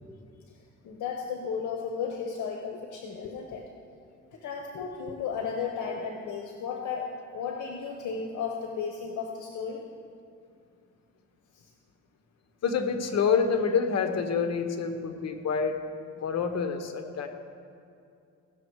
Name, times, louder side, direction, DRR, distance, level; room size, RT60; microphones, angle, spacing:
voice 1, 0.8-3.7 4.3-9.8 11.5-11.7, left 6 dB, 80° left, 2 dB, 1.0 m, -34 dB
voice 2, 12.6-15.8 16.2-17.3, left 6 dB, 60° left, 7 dB, 1.2 m, -27 dB
16.5 x 6.5 x 4.7 m, 2.5 s
cardioid pair, 90°, 30 cm